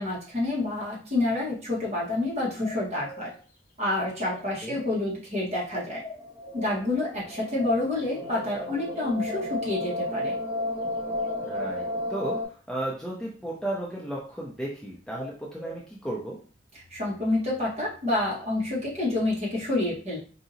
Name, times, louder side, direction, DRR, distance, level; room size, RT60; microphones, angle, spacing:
voice 1, 0.0-3.3 3.8-6.0 6.5-10.3 16.9-20.2, left 2 dB, 35° right, -6 dB, 1.5 m, -28 dB
sound 1, 2.6-3.3 4.2-4.9 6.0-6.8 7.6-8.3 9.2-9.9 11.2-11.9 15.2-15.8, left 1 dB, 45° left, 0.8 m, -42 dB
sound 2, 6.0-12.4, left 1 dB, 15° right, 1.3 m, -33 dB
voice 2, 11.4-12.4 12.7-16.4, right 1 dB, 5° left, -5 dB, 0.6 m, -34 dB
4.8 x 2.7 x 2.7 m, 0.40 s
head